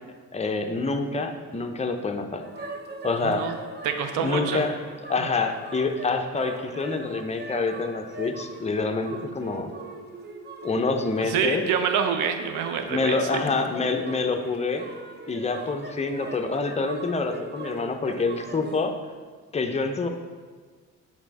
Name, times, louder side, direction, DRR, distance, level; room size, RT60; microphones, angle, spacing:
voice 1, 0.3-2.7 3.0-3.5 4.2-4.8 5.1-9.7 10.6-11.6 12.9-14.8 15.3-18.9 19.5-20.1, left 3 dB, 20° left, 5 dB, 0.6 m, -27 dB
sound 1, 2.4-18.8, right 3 dB, 35° right, 0.6 m, -40 dB
voice 2, 3.2-3.6 3.8-4.6 11.2-13.6, right 7 dB, 85° right, 7 dB, 0.6 m, -27 dB
6.5 x 3.4 x 4.7 m, 1.5 s
cardioid pair, 90°, 30 cm